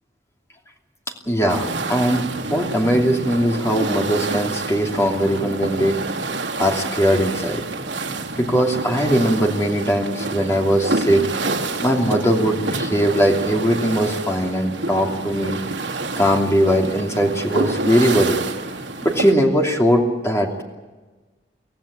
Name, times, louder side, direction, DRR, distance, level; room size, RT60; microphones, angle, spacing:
voice 1, 1.3-2.2 2.5-6.0 6.6-7.6 8.4-11.3 11.8-15.6 16.2-18.4 19.0-20.6, equal, 15° left, 1 dB, 2.8 m, -20 dB
sound 1, 1.5-19.3, right 2 dB, 75° right, 2.4 m, -28 dB
25.0 x 16.5 x 8.7 m, 1.3 s
head